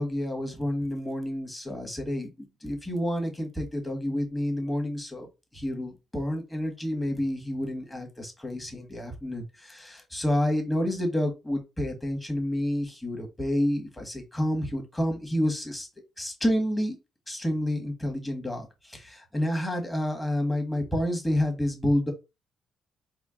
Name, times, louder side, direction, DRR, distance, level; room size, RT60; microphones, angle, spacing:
voice 1, 0.0-5.3 5.5-15.9 16.2-17.0 17.3-22.1, left 1 dB, 15° left, 1.3 m, -29 dB
4.3 x 2.1 x 3.7 m
cardioid pair, 90°, 0 cm